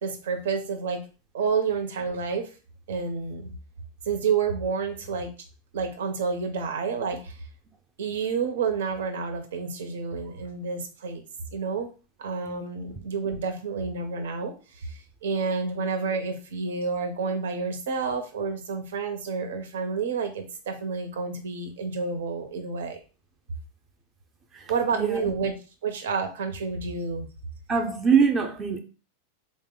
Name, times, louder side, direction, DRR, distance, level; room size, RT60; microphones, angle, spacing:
voice 1, 0.0-1.0 1.3-2.5 2.9-3.5 4.1-5.3 5.7-7.4 8.0-11.2 11.5-11.9 12.2-23.0 24.7-25.5 25.8-27.3, right 5 dB, 85° right, 0.7 m, -29 dB
voice 2, 24.5-25.3 27.7-28.8, right 6 dB, 15° right, 0.5 m, -24 dB
3.9 x 2.1 x 3.7 m
supercardioid pair, 180°, 0 cm